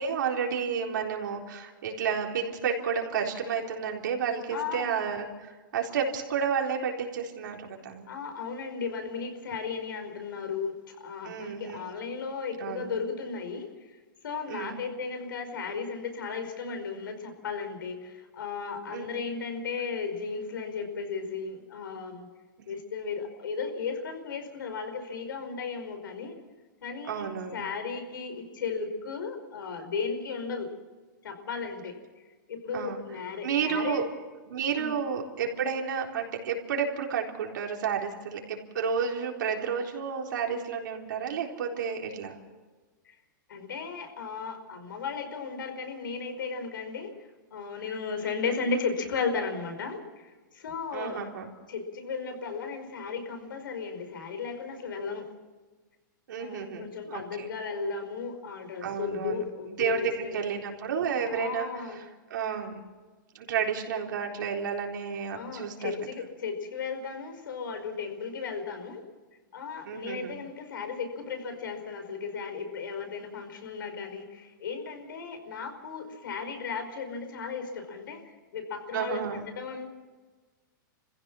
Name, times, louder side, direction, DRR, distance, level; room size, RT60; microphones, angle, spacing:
voice 1, 0.0-8.1 11.2-11.8 12.6-12.9 14.5-14.9 18.9-19.1 22.6-22.7 27.1-27.6 32.7-33.0 33.4-34.0 34.5-42.4 48.2-48.3 50.9-51.5 56.3-57.5 58.8-59.4 59.8-62.0 62.3-62.8 63.3-65.9 69.9-70.3 78.9-79.4, right 6 dB, 65° right, 1 dB, 3.9 m, -31 dB
voice 2, 4.5-4.9 8.1-22.3 22.7-26.3 26.8-27.3 27.5-30.7 31.2-34.0 34.7-35.0 43.0-43.2 43.5-51.2 51.7-55.3 56.4-60.3 61.2-62.0 65.3-69.0 69.5-79.9, left 5 dB, 85° left, 6 dB, 5.1 m, -35 dB
27.0 x 15.5 x 6.3 m, 1.3 s
supercardioid pair, 170°, 11 cm